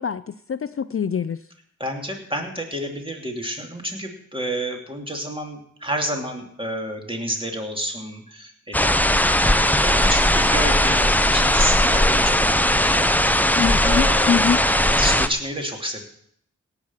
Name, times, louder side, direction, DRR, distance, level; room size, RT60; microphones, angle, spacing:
voice 1, 0.0-1.5 13.5-14.6, left 7 dB, 45° left, 14 dB, 0.4 m, -24 dB
voice 2, 1.8-9.4 9.8-11.0 11.3-16.0, equal, 15° right, 2 dB, 2.9 m, -30 dB
sound 1, 8.7-15.3, left 1 dB, 5° left, 0.8 m, -18 dB
17.5 x 6.1 x 7.3 m, 0.66 s
wide cardioid pair, 40°, 31 cm